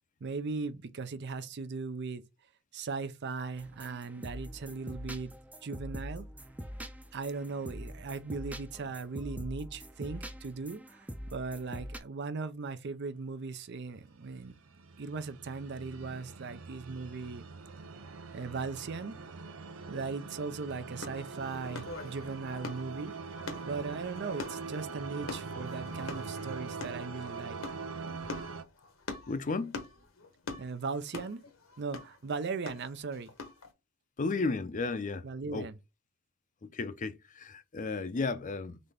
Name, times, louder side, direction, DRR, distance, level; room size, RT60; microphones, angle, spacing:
voice 1, 0.2-2.2 2.7-5.3 5.6-6.3 7.1-14.5 15.0-17.4 18.3-19.2 19.9-23.2 23.6-27.6 30.6-31.4 31.8-33.3 35.2-35.8, right 4 dB, 55° right, 0.5 m, -38 dB
sound 1, 3.6-12.0, equal, 10° right, 0.5 m, -44 dB
sound 2, 14.3-28.6, right 4 dB, 90° right, 0.7 m, -43 dB
sound 3, 21.0-33.7, left 3 dB, 75° left, 1.2 m, -45 dB
voice 2, 29.3-29.8 34.2-35.2 35.5-35.7 36.6-38.8, left 3 dB, 40° left, 0.6 m, -33 dB
4.0 x 3.3 x 3.4 m
head